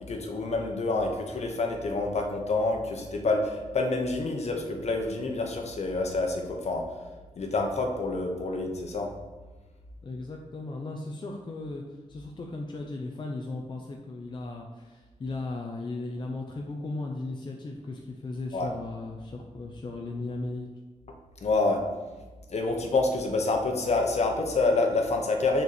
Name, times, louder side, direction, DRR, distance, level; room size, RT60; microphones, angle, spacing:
voice 1, 0.0-6.8 7.4-9.1 18.5-18.7 21.4-21.8 22.5-25.6, left 3 dB, 55° left, 3 dB, 1.2 m, -27 dB
voice 2, 10.0-11.8 12.1-20.7, left 2 dB, 35° left, 0 dB, 0.7 m, -36 dB
6.8 x 4.6 x 6.8 m, 1.3 s
wide cardioid pair, 165°, 13 cm